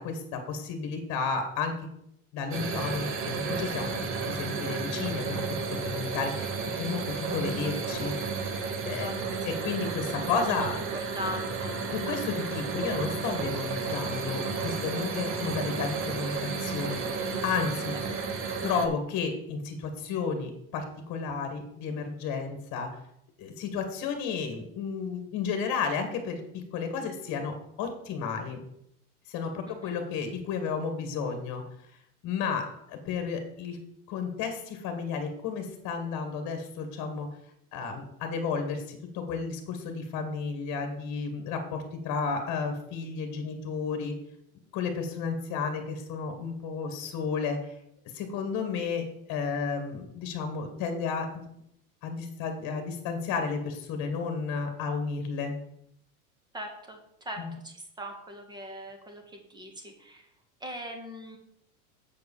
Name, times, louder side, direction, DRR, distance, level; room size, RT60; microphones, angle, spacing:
voice 1, 0.0-1.7 2.3-4.0 4.3-5.4 5.8-8.1 8.8-9.1 9.5-10.8 11.9-18.0 18.6-22.9 23.4-28.6 29.3-31.6 32.2-33.8 34.1-37.3 37.7-44.2 44.7-47.7 48.1-51.4 52.0-55.6 57.4-57.5, left 5 dB, 40° left, 6 dB, 1.7 m, -32 dB
sound 1, 2.5-18.9, right 4 dB, 30° right, 1.3 m, -32 dB
voice 2, 8.8-9.2 9.5-9.6 10.5-11.8 18.2-18.3 29.6-30.0 56.5-60.3 60.6-61.4, equal, 10° right, 4 dB, 1.7 m, -40 dB
7.6 x 4.9 x 7.2 m, 0.76 s
supercardioid pair, 130°, 45 cm